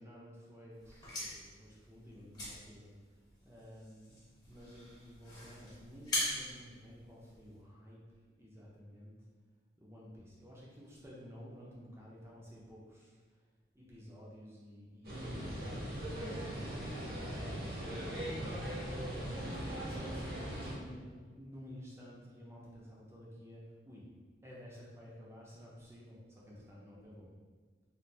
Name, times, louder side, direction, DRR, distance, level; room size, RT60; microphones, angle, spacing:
voice 1, 0.0-4.2 4.5-8.0 8.4-9.2 9.8-13.5 13.7-16.7 17.2-18.8 19.4-24.1 24.4-27.3, equal, 15° right, -5 dB, 0.5 m, -52 dB
sound 1, 0.8-7.6, left 1 dB, 20° left, 0.8 m, -42 dB
sound 2, 15.0-20.7, equal, 55° right, 0.8 m, -39 dB
3.2 x 2.5 x 2.6 m, 1.5 s
head